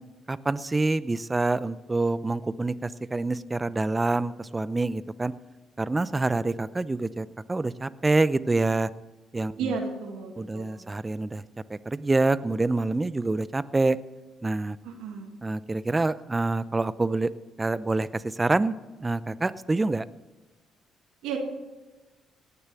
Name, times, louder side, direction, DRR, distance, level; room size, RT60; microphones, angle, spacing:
voice 1, 0.3-5.3 5.8-8.9 9.3-9.8 10.4-11.4 11.7-14.0 14.4-14.8 15.4-17.3 17.6-18.7 19.0-20.0, right 2 dB, 20° right, 16 dB, 0.6 m, -26 dB
voice 2, 9.6-10.9 14.8-15.3 21.2-21.4, right 5 dB, 85° right, 1 dB, 1.9 m, -33 dB
18.0 x 6.9 x 8.3 m, 1.2 s
supercardioid pair, 75°, 0 cm